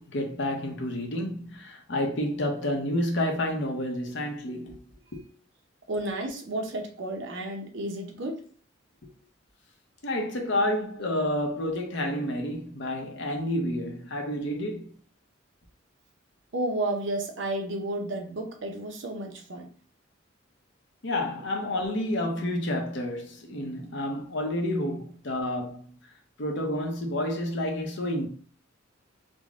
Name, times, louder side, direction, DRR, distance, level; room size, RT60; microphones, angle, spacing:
voice 1, 0.0-5.2 10.0-14.9 21.0-26.0 26.4-28.3, left 1 dB, 65° left, 0.8 m, -30 dB
voice 2, 5.9-8.4 16.5-19.7, right 1 dB, 65° right, 0.8 m, -32 dB
3.8 x 2.2 x 3.6 m
head